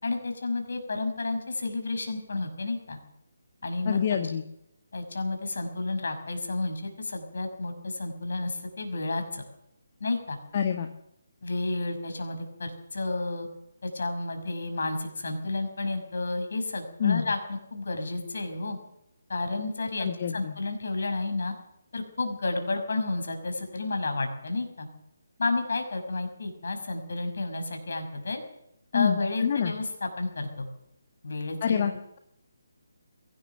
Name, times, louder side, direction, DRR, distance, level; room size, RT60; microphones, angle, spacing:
voice 1, 0.0-3.0 3.6-4.0 4.9-9.5 10.0-10.4 11.4-13.5 13.8-18.8 19.3-20.1 20.3-21.5 21.9-24.9 25.4-28.4 28.9-30.7 31.2-32.0, left 2 dB, 55° left, 5 dB, 6.1 m, -31 dB
voice 2, 3.8-4.4 10.5-10.9 17.0-17.3 20.0-20.5 28.9-29.7 31.6-31.9, left 8 dB, 35° left, 6 dB, 1.5 m, -26 dB
22.5 x 17.5 x 7.0 m, 0.80 s
figure-of-eight pair, 145°, 0 cm